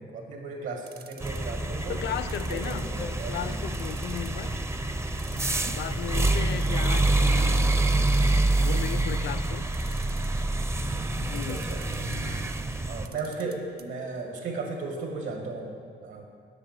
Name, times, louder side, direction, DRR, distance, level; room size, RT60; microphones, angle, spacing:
voice 1, 0.0-2.0 2.5-3.6 11.4-12.1 12.9-15.7 16.0-16.3, right 3 dB, 80° right, 2 dB, 1.9 m, -36 dB
sound 1, 0.9-1.6 2.3-3.3 3.7-4.4 4.8-4.9 5.2-6.0 6.3-6.4 6.6-7.2 8.1-9.0 9.7-10.5 11.4-12.2 13.0-13.8 14.1-14.2 14.5-14.6, right 6 dB, 50° right, 0.8 m, -49 dB
sound 2, 1.2-13.1, right 2 dB, 15° right, 0.5 m, -26 dB
voice 2, 1.9-4.6 5.3-8.2 8.6-9.7 11.2-11.6 12.0-12.5, left 9 dB, 65° left, 13 dB, 0.5 m, -36 dB
8.3 x 5.9 x 8.0 m, 2.3 s
cardioid pair, 90°, 20 cm